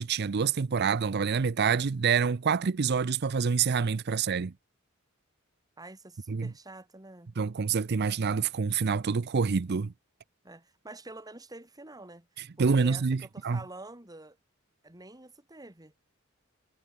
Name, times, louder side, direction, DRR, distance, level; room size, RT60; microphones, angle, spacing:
voice 1, 0.0-4.5 6.3-6.5 7.4-9.9 12.6-13.6, right 5 dB, 55° right, 0.5 m, -27 dB
voice 2, 5.8-7.3 10.4-12.3 12.6-14.4 14.8-15.9, right 2 dB, 20° right, 2.2 m, -47 dB
head